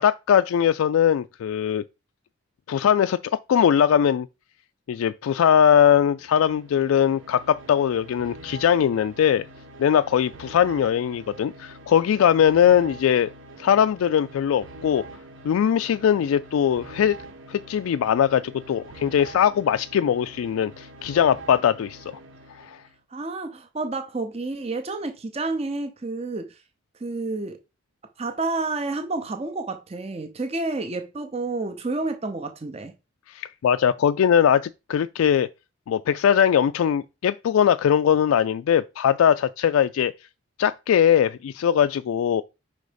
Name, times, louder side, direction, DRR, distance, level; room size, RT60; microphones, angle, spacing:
voice 1, 0.0-1.8 2.7-3.2 3.5-4.3 4.9-9.4 9.8-13.3 13.6-15.1 15.4-17.2 17.5-22.0 22.6-22.8 33.3-35.5 35.9-40.1 40.6-42.4, left 8 dB, 90° left, 0.3 m, -20 dB
sound 1, 6.1-23.0, right 2 dB, 70° right, 1.1 m, -45 dB
voice 2, 23.1-26.6 27.0-27.6 28.2-32.9, right 3 dB, 30° right, 0.6 m, -30 dB
5.4 x 3.9 x 5.0 m
head